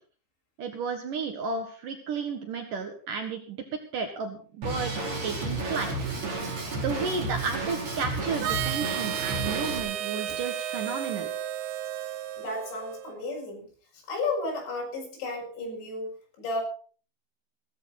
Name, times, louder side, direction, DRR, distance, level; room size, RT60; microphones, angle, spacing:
voice 1, 0.6-3.6 3.9-4.9 5.2-5.9 6.8-11.3, right 5 dB, 60° right, 5 dB, 2.6 m, -32 dB
Drum kit, 4.6-9.8, right 2 dB, 35° right, 4.3 m, -32 dB
Harmonica, 8.4-13.1, right 10 dB, 80° right, 2.0 m, -33 dB
voice 2, 12.4-13.7 14.1-16.6, left 2 dB, 90° left, 0 dB, 8.2 m, -33 dB
17.0 x 13.5 x 4.2 m, 0.41 s
omnidirectional pair, 5.1 m